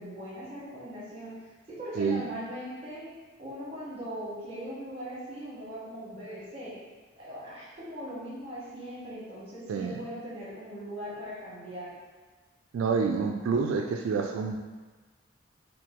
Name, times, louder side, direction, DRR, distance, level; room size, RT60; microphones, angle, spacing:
voice 1, 0.0-1.4 1.7-3.1 3.4-6.8 7.1-11.9, equal, 30° right, -7 dB, 1.3 m, -40 dB
voice 2, 12.7-14.6, right 5 dB, 85° right, 3 dB, 0.3 m, -28 dB
4.6 x 2.4 x 3.6 m, 1.3 s
head